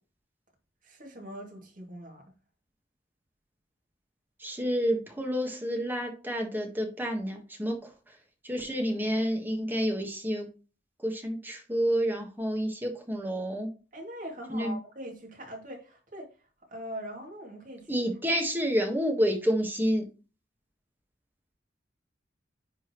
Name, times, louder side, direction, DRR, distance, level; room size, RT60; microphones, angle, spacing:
voice 1, 0.8-2.3 13.9-18.0, equal, 45° right, 2.5 m, -42 dB
voice 2, 4.4-8.1 8.4-10.5 11.0-13.7 14.5-14.8 17.9-20.1, equal, 10° right, 1.5 m, -29 dB
10.0 x 4.1 x 3.1 m
head